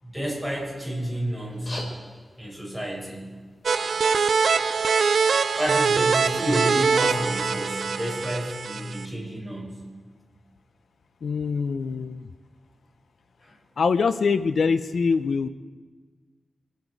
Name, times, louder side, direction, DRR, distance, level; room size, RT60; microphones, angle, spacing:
voice 1, 0.0-1.8 2.4-3.2 4.1-4.2 5.6-9.8, equal, ahead, -4 dB, 6.6 m, -30 dB
sound 1, 1.4-6.4, left 1 dB, 45° left, 3.7 m, -45 dB
sound 2, 3.7-9.1, right 5 dB, 85° right, 0.5 m, -23 dB
voice 2, 11.2-12.3 13.8-15.5, left 5 dB, 85° left, 12 dB, 0.5 m, -24 dB
27.0 x 9.2 x 4.8 m, 1.4 s
wide cardioid pair, 70°, 0 cm